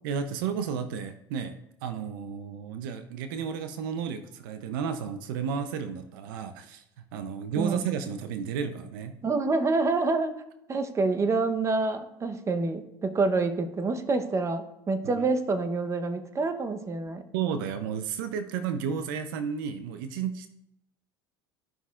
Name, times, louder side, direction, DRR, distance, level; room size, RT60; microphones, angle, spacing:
voice 1, 0.0-6.8 7.1-9.1 15.0-15.2 17.3-20.5, right 7 dB, 80° right, 10 dB, 0.6 m, -32 dB
voice 2, 9.2-10.4 10.7-17.3, right 3 dB, 25° right, 9 dB, 0.9 m, -27 dB
13.5 x 5.6 x 2.4 m, 0.82 s
supercardioid pair, 90°, 11 cm